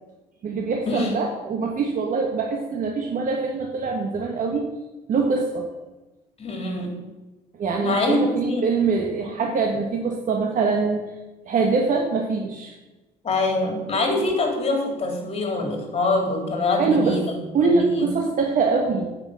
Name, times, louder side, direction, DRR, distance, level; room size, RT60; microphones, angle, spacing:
voice 1, 0.4-4.6 5.1-5.7 7.6-11.0 11.4-12.7 16.8-17.2 17.5-19.1, right 4 dB, 50° right, 1 dB, 1.4 m, -23 dB
voice 2, 6.4-6.9 7.8-8.6 9.3-9.4 13.2-17.3 17.6-18.1, left 2 dB, 35° left, 1 dB, 3.2 m, -24 dB
9.5 x 6.0 x 8.1 m, 1.1 s
cardioid pair, 110°, 17 cm